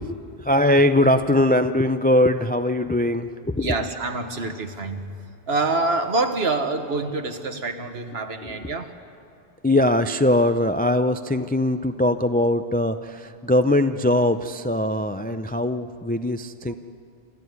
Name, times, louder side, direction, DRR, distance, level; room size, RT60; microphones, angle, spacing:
voice 1, 0.0-3.8 8.4-8.5 9.6-16.7, left 1 dB, 15° left, 9 dB, 0.4 m, -21 dB
voice 2, 3.6-5.0 5.5-8.9 16.7-16.8, right 3 dB, 70° right, 6 dB, 1.7 m, -26 dB
27.0 x 14.5 x 9.5 m, 2.5 s
omnidirectional pair, 1.1 m